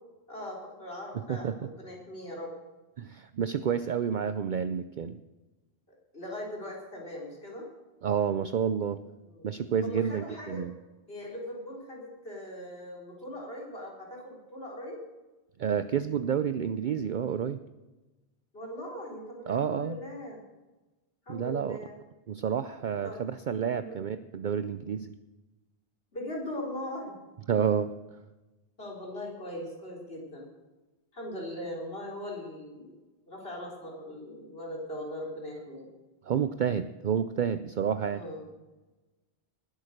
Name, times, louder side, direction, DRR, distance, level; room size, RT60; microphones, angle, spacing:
voice 1, 0.3-2.5 6.1-7.7 9.3-9.5 9.8-10.6 11.1-15.0 18.5-20.4 21.3-22.0 23.0-23.2 23.7-24.0 26.1-27.2 28.8-30.5 31.1-33.0 33.3-35.9 38.1-38.5, left 1 dB, 65° left, -2 dB, 4.4 m, -40 dB
voice 2, 1.1-1.6 3.0-5.2 8.0-9.0 9.4-10.7 15.6-17.6 19.5-20.0 21.3-21.8 22.3-25.1 27.5-27.9 36.2-38.2, right 7 dB, 55° right, 12 dB, 0.7 m, -29 dB
20.0 x 8.9 x 6.5 m, 1.1 s
omnidirectional pair, 1.1 m